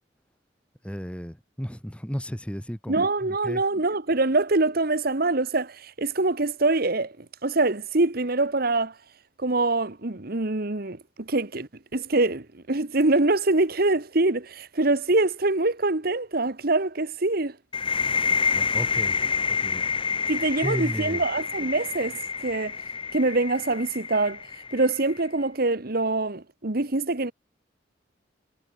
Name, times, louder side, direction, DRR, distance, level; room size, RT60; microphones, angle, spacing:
voice 1, 0.8-3.6 18.5-19.2 19.6-19.9 20.6-21.2, equal, 5° left, 3.1 m, -34 dB
voice 2, 2.9-8.9 9.4-17.5 20.3-22.1 22.4-22.7 23.1-24.4 24.7-27.3, right 2 dB, 55° right, 1.5 m, -24 dB
sound 1, 17.7-25.3, left 5 dB, 30° left, 1.6 m, -28 dB
head